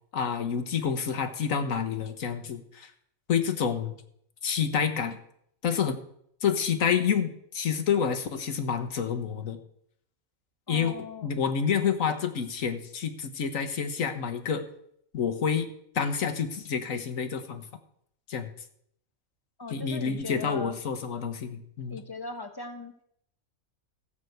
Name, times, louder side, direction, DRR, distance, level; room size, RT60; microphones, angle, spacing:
voice 1, 0.1-2.9 3.3-4.0 4.4-5.2 5.6-6.0 6.4-9.6 10.7-11.0 11.2-14.6 15.1-15.7 15.9-17.6 18.3-18.5 19.7-22.0, left 7 dB, 70° left, 7 dB, 1.6 m, -28 dB
voice 2, 10.7-11.4 19.6-20.8 21.9-22.9, left 3 dB, 20° left, 7 dB, 1.1 m, -39 dB
14.5 x 6.1 x 7.9 m, 0.70 s
omnidirectional pair, 1.5 m